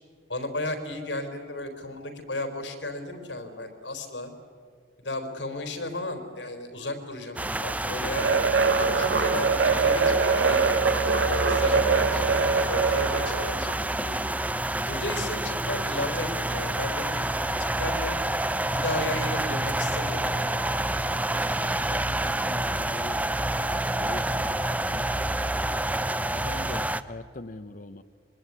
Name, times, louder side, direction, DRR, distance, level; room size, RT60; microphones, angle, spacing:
voice 1, 0.3-4.3 5.0-8.4 8.8-14.1 14.8-18.2 18.7-20.4, left 2 dB, 75° left, 6 dB, 4.1 m, -34 dB
sound 1, 7.4-27.0, right 1 dB, 10° right, 0.7 m, -28 dB
sound 2, 8.2-13.6, right 5 dB, 75° right, 0.8 m, -23 dB
sound 3, 19.8-25.7, equal, 10° left, 6.8 m, -49 dB
voice 2, 21.5-25.8 26.3-28.0, left 2 dB, 45° left, 8 dB, 0.8 m, -43 dB
25.0 x 23.0 x 9.7 m, 2.1 s
head